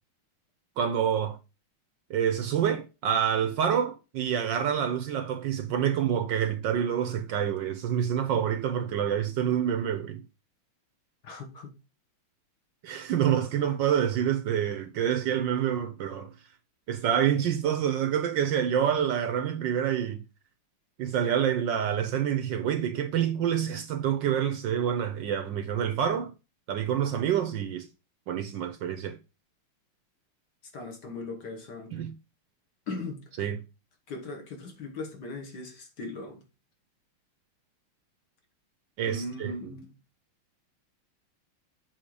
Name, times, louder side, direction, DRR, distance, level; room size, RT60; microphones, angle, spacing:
voice 1, 0.8-1.4 2.1-10.2 12.8-16.3 16.9-20.2 21.0-26.3 26.7-27.9 28.3-29.2 31.9-32.1 33.4-33.6 39.0-39.7, right 9 dB, 70° right, 1.2 m, -27 dB
voice 2, 11.2-11.7 30.7-31.9 32.9-33.2 34.1-36.4 39.1-39.9, left 2 dB, 55° left, 1.9 m, -38 dB
7.7 x 3.9 x 4.7 m
omnidirectional pair, 2.4 m